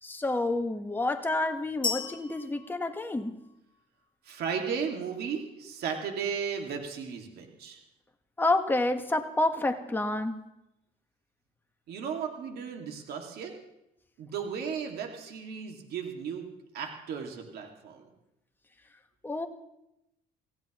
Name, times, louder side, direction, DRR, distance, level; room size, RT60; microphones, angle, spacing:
voice 1, 0.0-3.4 8.4-10.4 19.2-19.5, left 2 dB, 10° left, 5 dB, 1.3 m, -29 dB
sound 1, 1.8-3.8, left 5 dB, 25° left, 1.5 m, -36 dB
voice 2, 4.2-7.8 11.9-13.5 14.2-16.5 16.7-18.1, right 6 dB, 70° right, 2 dB, 2.1 m, -35 dB
26.5 x 16.0 x 3.0 m, 0.86 s
cardioid pair, 110°, 17 cm